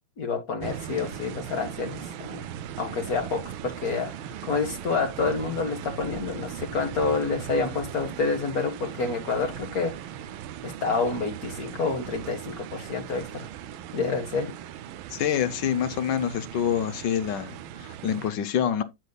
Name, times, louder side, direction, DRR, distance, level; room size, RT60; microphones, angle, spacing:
voice 1, 0.2-2.4 2.8-9.9 10.6-13.5 13.9-14.5, left 4 dB, 55° left, 1.4 m, -28 dB
sound 1, 0.6-18.3, right 10 dB, 85° right, 1.5 m, -39 dB
voice 2, 15.1-18.8, left 9 dB, 70° left, 1.2 m, -26 dB
10.5 x 8.1 x 2.2 m
omnidirectional pair, 2.2 m